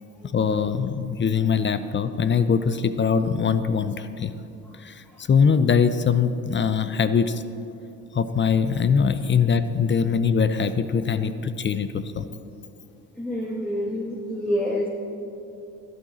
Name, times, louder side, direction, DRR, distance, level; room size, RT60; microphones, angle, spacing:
voice 1, 0.3-4.3 4.8-7.4 8.1-12.3, left 6 dB, 30° left, 12 dB, 0.6 m, -22 dB
voice 2, 13.2-14.9, equal, 5° left, -2 dB, 1.4 m, -27 dB
12.5 x 8.4 x 4.3 m, 2.7 s
supercardioid pair, 65°, 38 cm